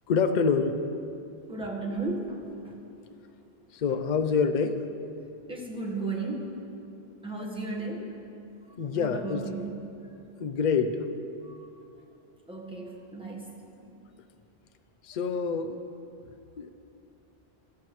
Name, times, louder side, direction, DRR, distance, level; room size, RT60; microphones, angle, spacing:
voice 1, 0.1-0.8 3.7-4.8 8.0-8.1 8.8-9.7 10.4-11.1 15.0-15.8 16.6-16.7, left 5 dB, 50° left, 9 dB, 0.6 m, -26 dB
voice 2, 1.5-2.7 5.5-6.6 7.2-8.1 8.7-9.8 11.4-11.6 12.5-13.8, right 3 dB, 5° right, -3 dB, 1.4 m, -35 dB
15.0 x 12.0 x 3.2 m, 2.7 s
omnidirectional pair, 1.1 m